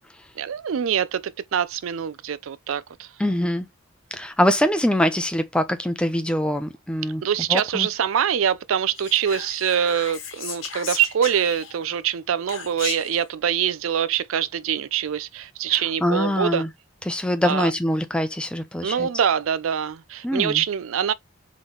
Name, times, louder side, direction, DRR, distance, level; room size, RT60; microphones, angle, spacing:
voice 1, 0.4-3.1 7.2-16.6 17.4-17.7 18.8-21.1, right 8 dB, 85° right, 0.4 m, -24 dB
voice 2, 3.2-3.7 4.1-7.2 7.5-7.9 16.0-16.7 17.1-19.1 20.2-20.6, equal, 5° left, 0.5 m, -23 dB
Whispering, 8.9-11.9 12.5-13.2, left 6 dB, 90° left, 1.4 m, -35 dB
3.8 x 3.1 x 3.9 m
head